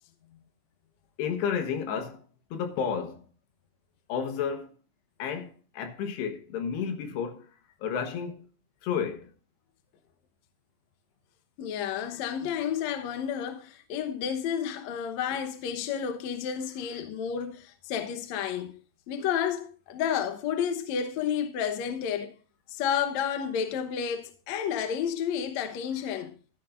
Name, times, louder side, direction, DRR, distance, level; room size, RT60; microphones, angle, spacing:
voice 1, 1.2-2.2 2.5-3.2 4.1-4.7 5.2-7.5 7.8-8.5 8.8-9.3, left 7 dB, 85° left, 3.5 m, -31 dB
voice 2, 11.6-18.7 19.1-22.3 22.7-26.4, left 8 dB, 70° left, 1.7 m, -31 dB
14.0 x 10.0 x 2.6 m
omnidirectional pair, 4.7 m